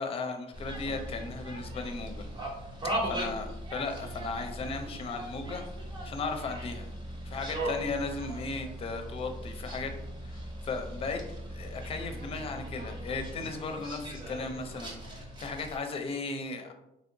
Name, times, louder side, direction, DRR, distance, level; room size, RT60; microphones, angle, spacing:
voice 1, 0.0-2.2 3.1-5.6 6.0-6.9 7.2-9.9 10.2-11.2 11.5-16.7, left 4 dB, 35° left, 5 dB, 0.5 m, -36 dB
sound 1, 0.5-15.8, right 1 dB, 30° right, 0.8 m, -39 dB
3.1 x 2.7 x 2.6 m, 0.86 s
cardioid pair, 110°, 17 cm